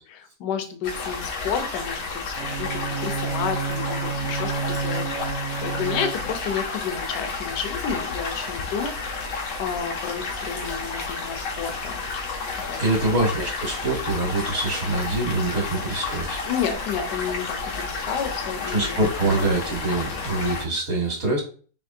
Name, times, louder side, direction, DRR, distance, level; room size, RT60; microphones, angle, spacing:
voice 1, 0.1-12.2 12.7-13.2 16.4-19.0, left 7 dB, 65° left, 7 dB, 1.2 m, -31 dB
sound 1, 0.8-20.7, left 4 dB, 85° left, 1.8 m, -31 dB
Bowed string instrument, 2.3-6.6, right 6 dB, 65° right, 0.9 m, -30 dB
voice 2, 12.8-16.4 18.7-21.4, right 2 dB, 45° right, 0 dB, 1.6 m, -25 dB
5.2 x 3.1 x 2.6 m, 0.39 s
omnidirectional pair, 2.2 m